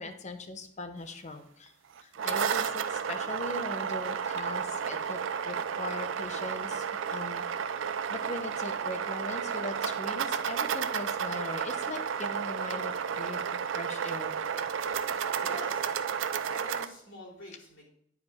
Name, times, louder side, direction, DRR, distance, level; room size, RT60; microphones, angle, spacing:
voice 1, 0.0-1.7 2.0-5.2 5.4-7.7 8.1-14.3, left 2 dB, 40° left, 8 dB, 0.7 m, -40 dB
sound 1, 2.0-16.9, right 7 dB, 80° right, 0.4 m, -32 dB
voice 2, 15.4-17.8, left 2 dB, 85° left, -4 dB, 2.8 m, -47 dB
9.6 x 4.8 x 3.5 m, 0.71 s
head